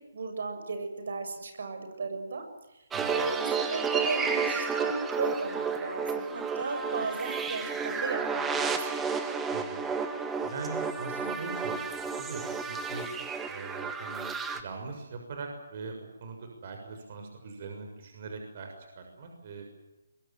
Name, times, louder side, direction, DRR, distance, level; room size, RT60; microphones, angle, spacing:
voice 1, 0.1-2.4 3.1-8.8, right 4 dB, 60° right, 6 dB, 7.3 m, -35 dB
sound 1, 2.9-14.6, right 5 dB, 5° right, 1.7 m, -32 dB
voice 2, 2.9-3.3 9.5-9.8 10.1-10.2 10.4-11.8 12.2-13.0 13.5-14.3 14.5-19.6, right 4 dB, 40° right, 3 dB, 6.5 m, -41 dB
23.0 x 22.5 x 9.4 m, 0.91 s
hypercardioid pair, 170°, 0 cm